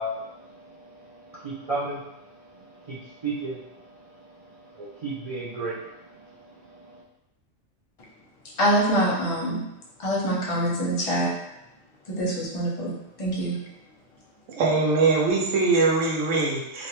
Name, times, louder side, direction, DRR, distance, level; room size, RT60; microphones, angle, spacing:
voice 1, 0.0-7.0, right 2 dB, 65° right, -8 dB, 0.3 m, -35 dB
voice 2, 8.6-9.6 10.0-11.3 12.1-13.6, right 1 dB, 35° left, -4 dB, 0.6 m, -25 dB
voice 3, 14.5-16.9, right 3 dB, 80° right, -2 dB, 1.0 m, -22 dB
2.5 x 2.1 x 2.9 m, 0.87 s
omnidirectional pair, 1.3 m